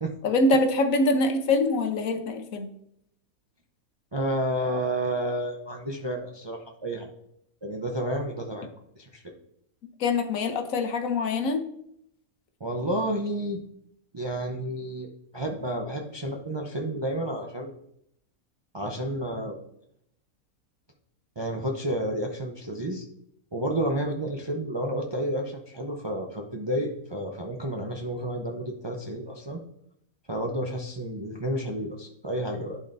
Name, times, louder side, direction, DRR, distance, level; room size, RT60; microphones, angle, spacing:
voice 1, 0.2-2.7 10.0-11.6, left 2 dB, 70° left, 6 dB, 1.2 m, -24 dB
voice 2, 4.1-7.1 7.6-8.7 9.0-9.2 12.6-13.6 14.1-15.1 15.3-17.7 18.7-19.6 21.4-23.0 23.5-29.6 30.3-32.8, right 1 dB, 30° right, 1 dB, 0.5 m, -30 dB
11.0 x 4.3 x 2.6 m, 0.72 s
omnidirectional pair, 1.5 m